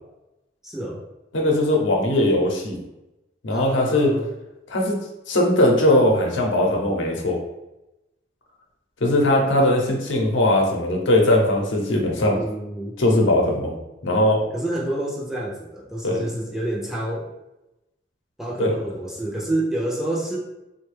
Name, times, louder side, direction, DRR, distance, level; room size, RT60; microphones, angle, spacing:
voice 1, 0.6-1.0 3.5-4.3 12.3-12.9 14.5-17.3 18.4-20.4, right 1 dB, 5° right, -4 dB, 0.4 m, -28 dB
voice 2, 1.3-2.8 3.4-4.1 4.7-5.0 5.3-7.4 9.0-12.4 13.0-13.7 14.0-14.4 16.0-16.3 18.6-18.7, left 1 dB, 80° left, 0 dB, 0.7 m, -19 dB
3.4 x 2.2 x 3.2 m, 0.95 s
head